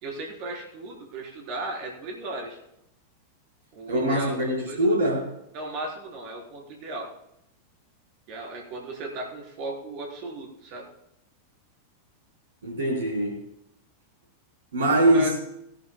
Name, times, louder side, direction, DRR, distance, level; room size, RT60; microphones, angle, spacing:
voice 1, 0.0-2.6 3.7-5.0 5.5-7.1 8.3-10.9 15.1-15.3, right 2 dB, 40° right, 3.8 m, -36 dB
voice 2, 3.9-5.3 12.6-13.4 14.7-15.3, right 1 dB, 65° right, 4.1 m, -23 dB
19.0 x 11.5 x 2.2 m
figure-of-eight pair, 90°, 0 cm